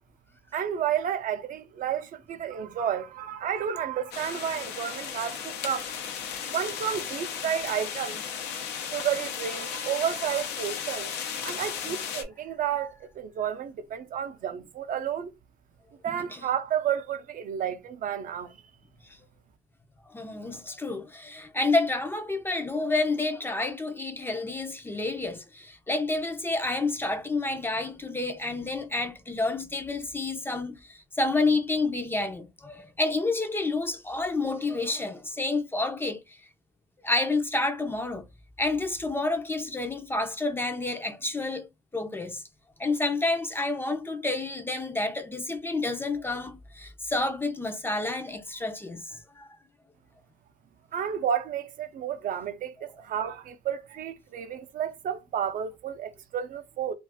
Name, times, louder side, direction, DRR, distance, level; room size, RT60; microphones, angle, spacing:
voice 1, 0.5-5.9 6.5-8.2 8.8-15.3 16.0-18.6 50.9-56.9, right 9 dB, 55° right, 0.5 m, -31 dB
sound 1, 4.1-12.2, left 8 dB, 85° left, 0.7 m, -35 dB
voice 2, 16.1-16.4 20.1-36.4 37.0-38.3 38.6-41.7 41.9-42.4 42.8-49.5 52.8-52.9, left 2 dB, 15° left, 0.5 m, -29 dB
2.4 x 2.4 x 3.5 m
cardioid pair, 110°, 17 cm